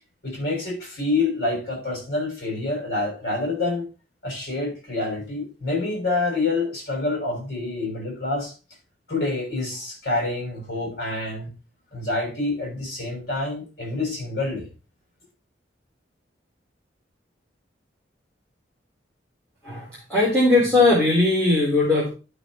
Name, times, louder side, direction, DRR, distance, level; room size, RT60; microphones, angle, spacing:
voice 1, 0.2-3.9 4.2-8.5 9.1-11.5 11.9-14.7, left 2 dB, 55° left, 0 dB, 6.1 m, -27 dB
voice 2, 19.6-22.1, left 2 dB, 5° left, -7 dB, 3.4 m, -19 dB
11.0 x 6.1 x 4.2 m, 0.32 s
head